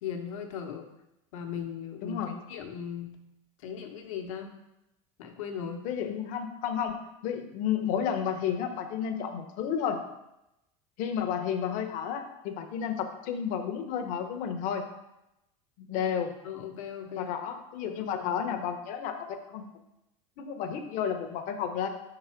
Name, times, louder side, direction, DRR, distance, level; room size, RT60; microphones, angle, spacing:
voice 1, 0.0-0.9 1.3-3.2 3.6-4.5 5.2-5.8 16.4-17.4 17.8-18.4, left 7 dB, 80° left, 4 dB, 0.9 m, -38 dB
voice 2, 2.0-2.4 5.8-7.0 7.2-10.0 11.0-14.8 15.8-16.3 17.2-19.6 20.4-21.9, left 8 dB, 55° left, 6 dB, 0.8 m, -31 dB
5.5 x 3.9 x 4.4 m, 0.89 s
supercardioid pair, 115°, 17 cm